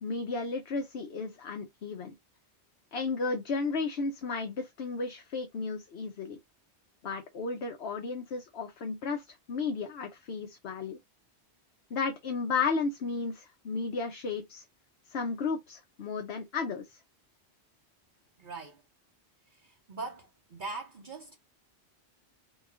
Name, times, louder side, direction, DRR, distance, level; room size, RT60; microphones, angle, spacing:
voice 1, 0.0-2.1 2.9-6.4 7.0-11.0 11.9-14.6 15.1-16.9, left 4 dB, 70° left, 1.0 m, -33 dB
voice 2, 18.4-18.8 19.5-21.4, right 3 dB, 50° right, 0.9 m, -41 dB
5.1 x 2.3 x 3.6 m
omnidirectional pair, 1.1 m